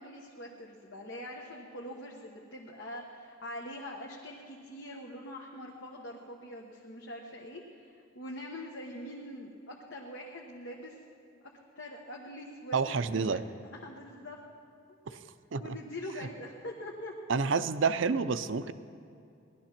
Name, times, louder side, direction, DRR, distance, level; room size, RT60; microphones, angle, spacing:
voice 1, 0.0-11.0 11.8-13.4 13.7-14.4 15.1-15.2 15.6-17.1, left 1 dB, 70° left, -1 dB, 1.2 m, -43 dB
voice 2, 12.7-13.4 15.5-15.8 17.3-18.7, right 5 dB, 70° right, 13 dB, 0.6 m, -28 dB
18.5 x 12.5 x 5.9 m, 2.5 s
head